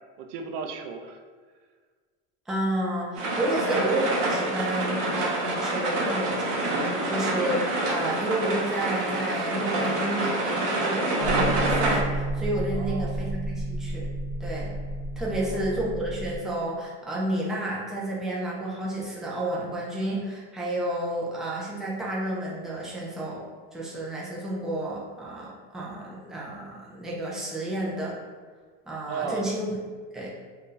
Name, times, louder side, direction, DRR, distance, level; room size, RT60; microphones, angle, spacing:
voice 1, 0.2-1.2 12.7-13.3 15.4-15.7 29.1-29.5, right 5 dB, 60° right, 5 dB, 0.5 m, -35 dB
voice 2, 2.5-14.1 14.4-14.8 15.2-23.4 23.7-28.2 28.9-29.8 30.1-30.3, right 1 dB, ahead, -5 dB, 0.3 m, -31 dB
sound 1, 3.1-12.0, right 1 dB, 80° right, 0.9 m, -27 dB
sound 2, 11.2-16.4, right 2 dB, 55° left, 1.1 m, -31 dB
2.6 x 2.3 x 3.7 m, 1.5 s
supercardioid pair, 140°, 36 cm